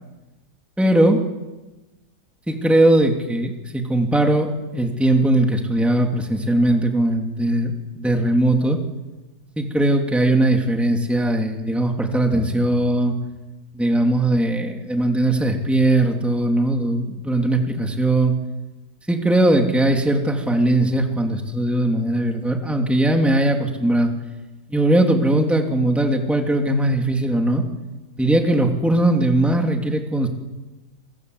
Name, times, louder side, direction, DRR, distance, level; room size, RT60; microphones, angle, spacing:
voice 1, 0.8-1.2 2.5-8.8 9.6-13.2 13.7-18.4 19.1-24.1 24.7-27.6 28.2-30.3, right 1 dB, ahead, 2 dB, 2.9 m, -19 dB
28.0 x 24.0 x 8.2 m, 1.1 s
omnidirectional pair, 1.9 m